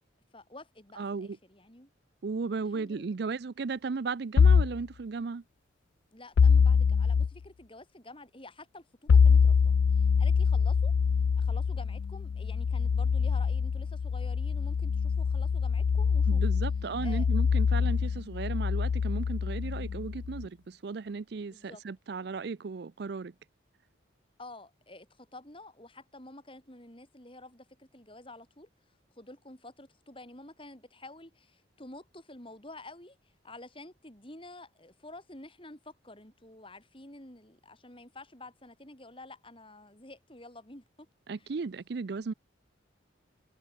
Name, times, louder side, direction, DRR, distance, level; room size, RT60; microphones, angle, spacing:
voice 1, 0.3-1.9 2.7-3.2 6.1-10.9 11.3-16.6 17.0-17.3 21.5-21.8 24.4-28.7 29.2-33.2 33.4-41.1 41.4-41.5, left 2 dB, 25° left, 4.8 m, -49 dB
voice 2, 1.0-1.4 2.2-5.4 16.3-23.3 41.3-42.3, right 4 dB, 55° right, 0.5 m, -35 dB
sound 1, 4.4-4.8 6.4-7.3 9.1-20.4, left 6 dB, 65° left, 0.3 m, -24 dB
head